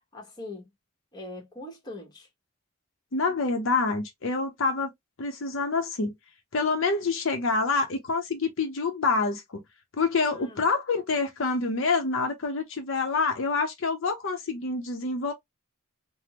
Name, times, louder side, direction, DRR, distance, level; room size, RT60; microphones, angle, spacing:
voice 1, 0.1-0.7 1.1-2.3 10.2-10.6, left 2 dB, 20° left, 1.0 m, -42 dB
voice 2, 3.1-4.9 5.2-6.1 6.5-9.6 10.0-15.3, left 4 dB, 60° left, 0.6 m, -27 dB
3.3 x 2.0 x 2.8 m
head